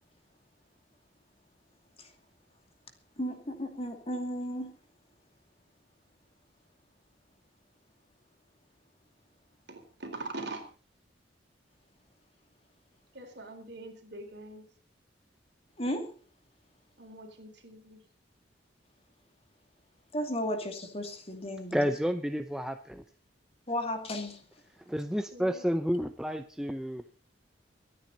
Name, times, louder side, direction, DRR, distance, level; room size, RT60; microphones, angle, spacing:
voice 1, 3.2-4.7 15.8-16.1 20.1-21.9 23.7-24.4, equal, 35° left, 2.6 m, -34 dB
voice 2, 9.7-10.6 13.1-14.6 17.0-18.0 25.3-25.7, right 2 dB, 65° right, 3.9 m, -43 dB
voice 3, 21.7-23.0 24.9-27.0, equal, 5° right, 0.7 m, -30 dB
24.5 x 9.4 x 4.1 m
head